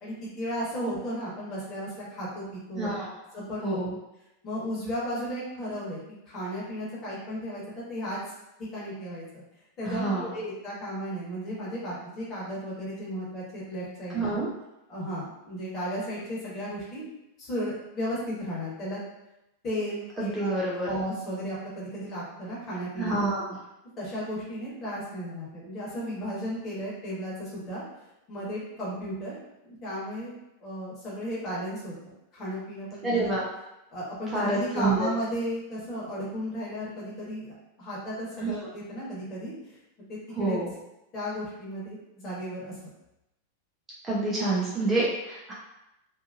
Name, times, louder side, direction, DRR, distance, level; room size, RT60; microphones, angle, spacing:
voice 1, 0.0-2.9 3.3-3.8 4.4-6.0 6.3-7.6 7.9-8.2 8.7-9.4 9.8-14.3 14.9-17.0 17.4-19.0 19.6-20.6 20.8-23.3 24.0-27.8 28.3-29.3 29.6-30.3 30.6-33.3 33.9-37.5 37.8-39.5 40.1-40.6 41.1-42.7, equal, 30° left, -7 dB, 1.3 m, -34 dB
voice 2, 2.8-3.1 3.6-3.9 9.8-10.3 14.1-14.5 20.2-20.9 23.0-23.4 33.0-33.4 34.3-35.1 38.4-38.5 40.4-40.7 44.0-45.5, right 2 dB, 15° right, -6 dB, 0.6 m, -27 dB
2.7 x 2.5 x 2.4 m, 0.90 s
figure-of-eight pair, 90°, 0 cm